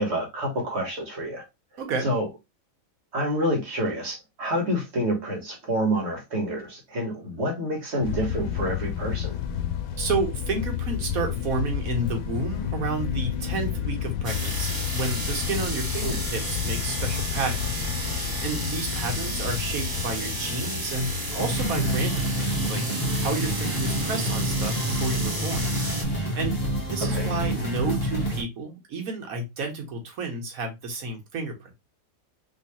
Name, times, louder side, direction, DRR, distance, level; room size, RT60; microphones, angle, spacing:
voice 1, 0.0-1.4 2.0-2.3 3.1-9.4 16.0-16.2 27.0-27.3, equal, 55° right, 1.4 m, -28 dB
voice 2, 1.8-2.1 10.0-25.7 26.0-31.7, right 3 dB, 85° right, 1.4 m, -31 dB
sound 1, 8.0-22.0, left 10 dB, 85° left, 1.0 m, -31 dB
sound 2, 14.2-26.0, right 2 dB, 20° right, 0.8 m, -33 dB
sound 3, 21.3-28.4, equal, 30° left, 1.1 m, -27 dB
3.2 x 3.1 x 2.8 m
omnidirectional pair, 1.5 m